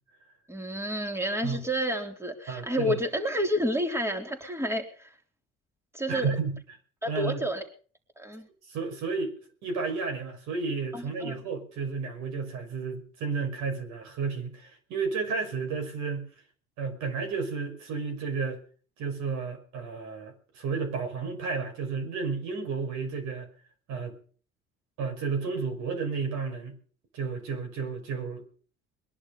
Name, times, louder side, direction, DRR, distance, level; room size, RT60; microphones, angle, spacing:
voice 1, 0.5-5.1 5.9-6.3 7.0-7.7 8.2-8.5 10.9-11.4, equal, 10° right, 4 dB, 3.7 m, -30 dB
voice 2, 2.5-3.0 6.1-6.6 7.1-7.4 8.7-9.3 9.6-16.3 16.8-18.6 19.0-23.5 23.9-24.1 25.0-26.8 27.1-28.4, right 5 dB, 70° right, 5 dB, 5.9 m, -32 dB
22.5 x 11.0 x 5.4 m, 0.42 s
hypercardioid pair, 60°, 30 cm